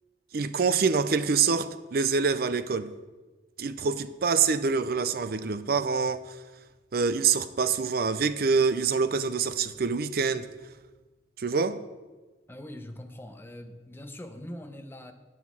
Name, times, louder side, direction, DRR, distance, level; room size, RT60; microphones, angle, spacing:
voice 1, 0.3-2.9 3.6-6.4 6.9-10.5 11.4-11.8, right 5 dB, 55° right, 0.5 m, -26 dB
voice 2, 12.5-15.1, left 1 dB, 10° left, 0.7 m, -42 dB
9.3 x 6.1 x 7.2 m
head